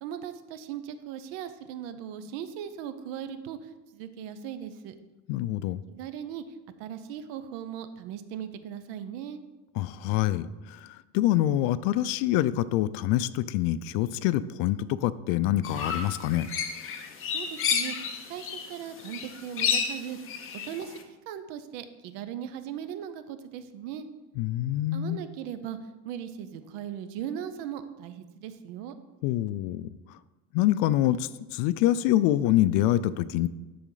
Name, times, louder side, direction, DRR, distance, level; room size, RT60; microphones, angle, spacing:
voice 1, 0.0-4.9 5.9-9.4 17.3-20.2 20.5-21.0 21.3-24.0 24.9-25.8 26.0-29.0, right 9 dB, 75° right, 11 dB, 0.7 m, -38 dB
voice 2, 5.3-5.8 9.8-16.5 24.4-25.2 29.2-30.2 30.5-33.5, left 13 dB, 75° left, 16 dB, 0.5 m, -26 dB
sound 1, 15.6-18.7 19.0-21.0, left 6 dB, 35° left, 0.8 m, -30 dB
12.0 x 4.2 x 3.9 m, 1.1 s
cardioid pair, 145°, 35 cm